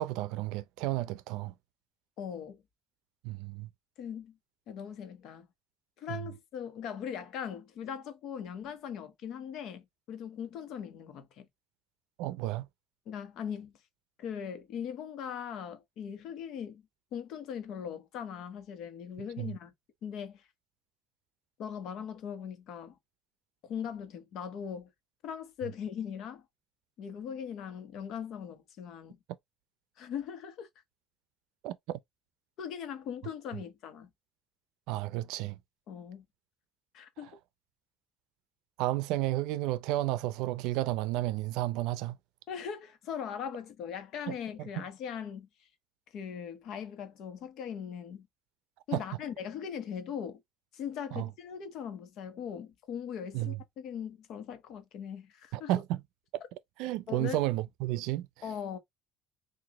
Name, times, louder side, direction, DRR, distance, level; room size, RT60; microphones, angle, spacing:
voice 1, 0.0-1.5 3.2-3.7 6.1-6.2 12.2-12.7 19.4-19.5 31.6-32.0 34.9-35.6 38.8-42.2 44.3-44.4 44.8-44.9 48.9-49.0 51.1-51.3 53.3-53.6 55.5-56.0 56.8-58.3, right 16 dB, 85° right, 0.4 m, -32 dB
voice 2, 2.2-2.6 4.0-4.4 4.7-5.5 6.0-11.5 13.1-13.7 14.2-16.8 17.1-19.7 20.0-20.5 21.6-23.0 23.6-24.9 25.2-26.4 27.0-29.2 30.0-30.7 32.6-34.1 35.9-36.2 36.9-37.4 42.5-45.7 46.1-48.3 48.9-50.4 50.7-55.7 57.1-57.4 58.4-58.8, left 8 dB, 65° left, 1.1 m, -40 dB
6.0 x 2.5 x 3.0 m
cardioid pair, 125°, 0 cm